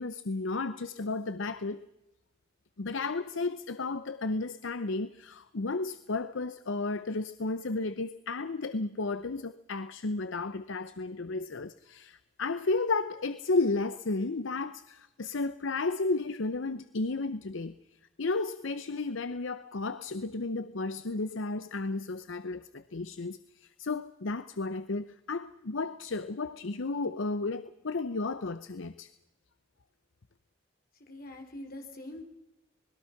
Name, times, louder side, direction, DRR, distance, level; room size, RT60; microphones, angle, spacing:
voice 1, 0.0-1.9 2.8-17.8 18.2-29.1, left 3 dB, 65° left, 0.7 m, -33 dB
voice 2, 31.0-32.2, left 1 dB, 45° left, 3.8 m, -44 dB
27.0 x 20.5 x 5.9 m
head